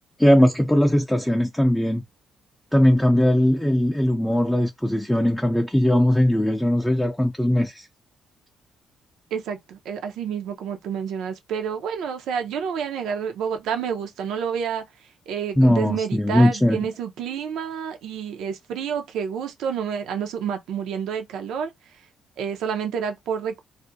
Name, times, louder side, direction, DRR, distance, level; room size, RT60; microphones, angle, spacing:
voice 1, 0.2-2.0 2.7-7.9 15.6-16.9, left 1 dB, 5° left, 0.4 m, -19 dB
voice 2, 9.3-14.8 15.3-21.7 22.4-23.6, right 7 dB, 85° right, 0.6 m, -29 dB
2.4 x 2.1 x 2.6 m
cardioid pair, 90°, 0 cm